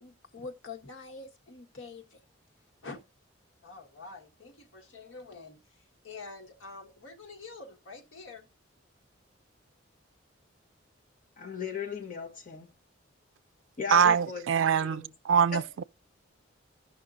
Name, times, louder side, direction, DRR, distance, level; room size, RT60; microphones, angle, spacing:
voice 1, 0.0-2.2 2.8-3.0 3.6-5.6 6.0-8.5, left 3 dB, 80° left, 1.5 m, -46 dB
voice 2, 11.4-12.7 13.8-14.5 14.8-15.1 15.5-15.6, left 4 dB, 40° left, 1.4 m, -36 dB
voice 3, 13.9-15.8, right 7 dB, 75° right, 0.3 m, -24 dB
15.0 x 5.7 x 2.6 m
head